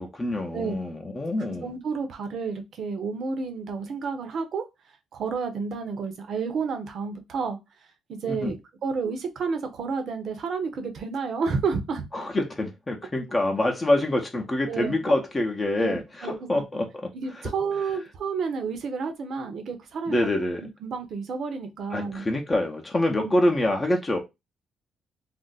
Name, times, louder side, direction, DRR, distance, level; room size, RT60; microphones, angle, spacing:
voice 1, 0.0-1.7 8.3-8.5 12.1-17.1 20.1-20.6 21.9-24.2, left 1 dB, 25° left, 0.7 m, -26 dB
voice 2, 1.6-4.6 5.1-7.6 8.1-8.6 8.8-12.1 14.7-14.9 15.8-16.3 17.1-20.2 20.8-22.2 23.2-23.3, right 5 dB, 60° right, 0.7 m, -30 dB
2.5 x 2.0 x 3.8 m
cardioid pair, 90°, 0 cm